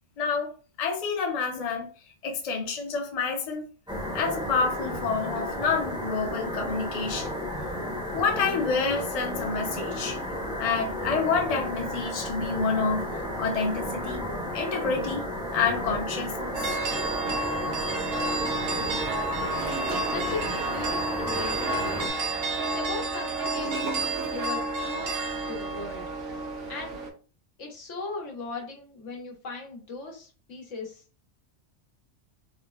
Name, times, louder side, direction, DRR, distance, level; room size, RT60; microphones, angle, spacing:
voice 1, 0.2-0.5 0.8-1.9 2.2-3.6 4.1-7.4 8.1-10.2 10.6-13.0 13.4-14.2 14.5-15.2 15.5-16.8, left 5 dB, 45° left, 3 dB, 0.5 m, -28 dB
sound 1, 3.9-22.1, equal, 5° right, 0.5 m, -33 dB
sound 2, 16.5-27.1, right 2 dB, 85° right, 1.0 m, -30 dB
Gurgling / Toilet flush, 18.6-24.7 25.0-25.1, right 3 dB, 50° right, 0.7 m, -40 dB
voice 2, 20.1-22.1 22.6-24.0 24.3-25.1 25.5-26.1 26.7-27.0 27.6-31.0, left 4 dB, 90° left, 0 dB, 1.2 m, -38 dB
3.6 x 2.1 x 2.2 m, 0.37 s
omnidirectional pair, 1.2 m